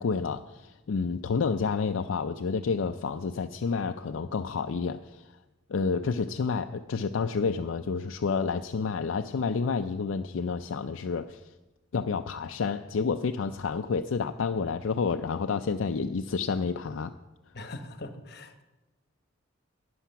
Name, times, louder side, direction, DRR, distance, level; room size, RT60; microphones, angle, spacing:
voice 1, 0.0-5.3 5.7-11.4 11.9-17.1, left 5 dB, 70° left, 7 dB, 0.4 m, -29 dB
voice 2, 17.5-18.6, left 2 dB, 50° left, 8 dB, 1.1 m, -41 dB
12.0 x 9.4 x 5.7 m, 1.1 s
head